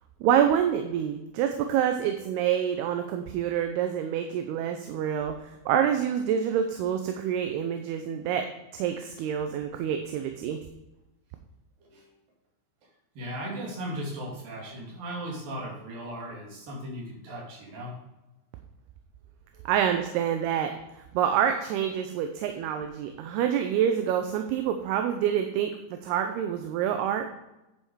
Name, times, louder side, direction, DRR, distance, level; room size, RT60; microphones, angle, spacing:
voice 1, 0.2-8.5 8.7-10.6 19.7-20.7 21.1-27.3, right 9 dB, 80° right, 6 dB, 2.6 m, -27 dB
voice 2, 13.2-17.9, right 1 dB, 60° right, -2 dB, 3.8 m, -37 dB
10.0 x 5.6 x 4.6 m, 0.94 s
omnidirectional pair, 4.7 m